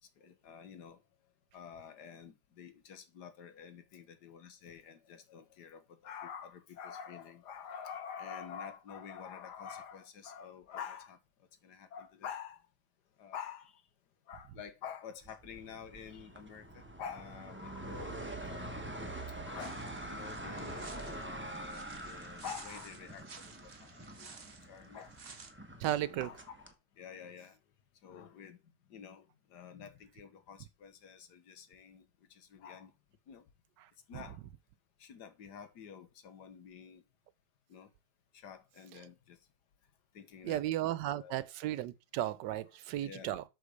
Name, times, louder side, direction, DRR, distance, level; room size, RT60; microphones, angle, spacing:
voice 1, 0.2-1.0 1.5-12.7 13.2-13.8 14.3-19.1 19.4-25.2 25.9-27.6 28.0-28.6 28.9-32.9 33.3-33.5 34.1-34.4 35.0-37.0 37.7-37.9 38.3-39.4 40.1-41.5 43.0-43.4, left 7 dB, 70° left, 1.7 m, -48 dB
sound 1, 15.2-26.7, right 1 dB, 10° right, 1.0 m, -45 dB
sound 2, 19.6-25.5, right 5 dB, 40° right, 1.2 m, -53 dB
voice 2, 25.8-26.3 40.4-43.4, right 13 dB, 90° right, 1.3 m, -34 dB
8.3 x 4.4 x 6.5 m
omnidirectional pair, 1.9 m